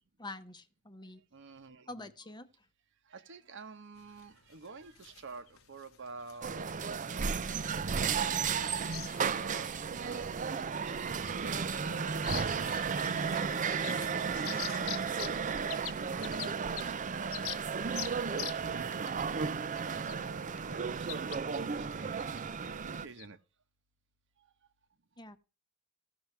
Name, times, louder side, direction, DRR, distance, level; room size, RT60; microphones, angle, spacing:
voice 1, 0.2-1.2 1.9-2.7 25.2-25.4, left 2 dB, 20° left, 0.9 m, -46 dB
voice 2, 1.3-2.1 3.1-8.9 9.4-13.1 13.6-14.9 15.4-19.1 19.7-23.4 24.4-24.5, right 4 dB, 60° right, 1.0 m, -50 dB
sound 1, 4.0-23.3, left 10 dB, 80° left, 1.0 m, -47 dB
sound 2, 6.4-23.1, right 6 dB, 40° right, 0.5 m, -34 dB
16.0 x 6.1 x 3.2 m
head